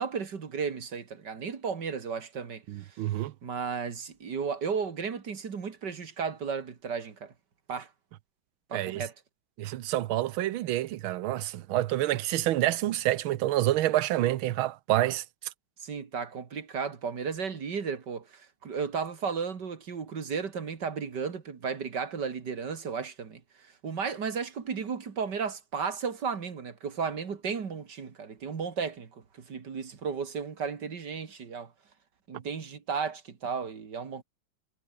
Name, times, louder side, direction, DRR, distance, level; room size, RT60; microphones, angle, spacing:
voice 1, 0.0-2.6 3.4-7.3 7.7-7.9 8.7-9.1 15.8-23.4 23.8-31.7 32.3-34.2, right 6 dB, 55° right, 2.6 m, -34 dB
voice 2, 2.7-3.3 8.7-9.0 9.6-15.2, right 14 dB, 80° right, 1.6 m, -28 dB
omnidirectional pair, 2.2 m